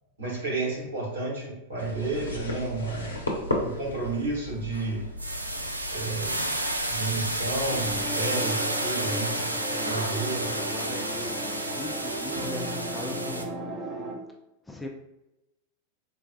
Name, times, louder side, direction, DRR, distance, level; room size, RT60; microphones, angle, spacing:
voice 1, 0.2-3.2 3.6-5.0 5.9-6.4 6.9-10.5, right 3 dB, 65° right, -5 dB, 1.5 m, -31 dB
sound 1, 1.8-8.1, left 1 dB, 75° left, 0.6 m, -36 dB
sound 2, 3.7-4.0 4.4-13.4, right 1 dB, 85° right, 0.3 m, -31 dB
sound 3, 7.7-14.1, right 1 dB, 25° right, 0.8 m, -35 dB
voice 2, 10.3-13.4 14.7-14.9, left 2 dB, 10° left, 1 dB, 0.4 m, -40 dB
3.9 x 2.2 x 2.2 m, 0.93 s
figure-of-eight pair, 90°, 0 cm